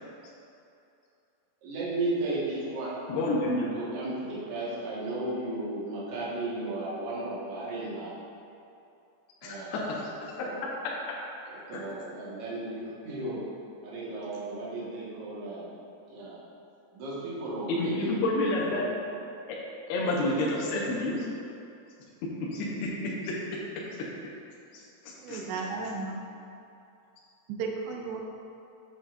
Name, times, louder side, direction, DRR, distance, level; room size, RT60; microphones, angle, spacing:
voice 1, 1.6-3.3 3.7-8.1 9.4-9.9 10.4-10.6 11.7-13.4 13.8-15.7 16.1-16.4 16.9-19.0, right 2 dB, 55° right, -8 dB, 1.7 m, -35 dB
voice 2, 3.1-3.7 9.4-10.3 11.7-11.8 17.7-18.8 19.9-21.3 22.2-23.4 24.7-25.4, left 2 dB, 75° left, -5 dB, 2.7 m, -29 dB
voice 3, 25.2-26.2 27.5-28.2, right 4 dB, 80° right, 0 dB, 2.9 m, -34 dB
8.3 x 7.9 x 2.6 m, 2.7 s
omnidirectional pair, 5.0 m